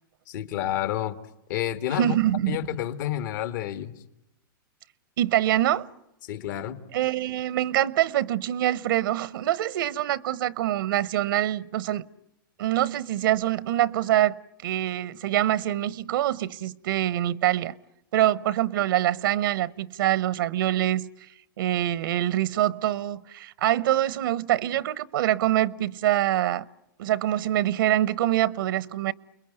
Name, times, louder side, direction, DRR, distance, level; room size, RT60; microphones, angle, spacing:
voice 1, 0.3-1.2 1.5-2.2 2.5-3.9 6.2-6.8, left 12 dB, 60° left, 2.2 m, -29 dB
voice 2, 1.9-2.6 5.2-5.9 6.9-12.1 12.6-17.7 18.1-21.1 21.6-26.7 27.0-29.1, right 13 dB, 70° right, 1.0 m, -25 dB
30.0 x 22.0 x 9.1 m
hypercardioid pair, 130°, 12 cm